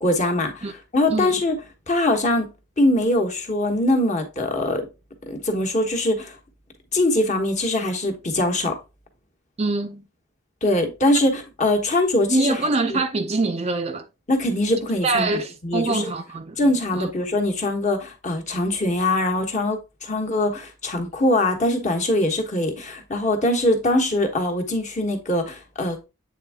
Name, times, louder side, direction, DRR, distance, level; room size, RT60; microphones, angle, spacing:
voice 1, 0.0-0.7 0.9-1.5 1.9-2.5 2.8-4.9 5.3-6.3 6.9-8.8 10.6-12.6 12.9-13.0 14.3-15.3 15.6-16.1 16.6-26.0, left 1 dB, 35° left, 1.1 m, -22 dB
voice 2, 9.6-10.0 12.3-14.1 15.0-16.6 16.9-17.1, right 3 dB, 30° right, 0.4 m, -24 dB
8.3 x 3.5 x 3.5 m
head